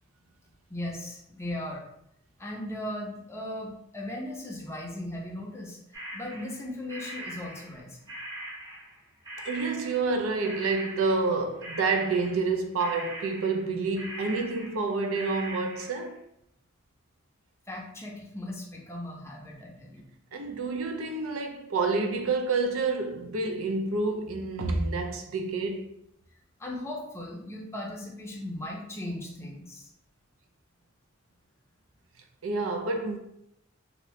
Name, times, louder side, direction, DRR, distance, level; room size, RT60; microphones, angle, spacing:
voice 1, 0.7-1.8 2.4-5.8 6.1-8.0 17.7-20.0 26.6-29.9, left 1 dB, 15° left, 0.6 m, -37 dB
sound 1, 5.9-9.0 9.2-10.2 10.4-11.4 11.6-16.1, right 1 dB, 15° right, 0.8 m, -41 dB
voice 2, 9.4-16.2 20.3-25.9 32.4-33.2, right 3 dB, 80° right, 0.5 m, -28 dB
2.7 x 2.6 x 3.1 m
head